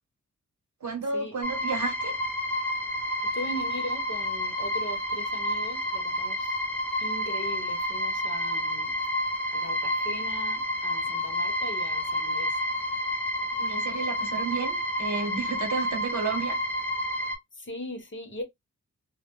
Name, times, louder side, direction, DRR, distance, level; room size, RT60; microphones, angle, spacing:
voice 1, 0.8-2.2 13.6-16.6, right 4 dB, 75° right, 0.9 m, -32 dB
sound 1, 1.4-17.4, equal, 5° left, 0.7 m, -30 dB
voice 2, 3.2-6.6 7.0-9.0 9.5-12.6 17.6-18.4, equal, 40° left, 0.9 m, -39 dB
2.2 x 2.1 x 2.9 m
wide cardioid pair, 105°, 30 cm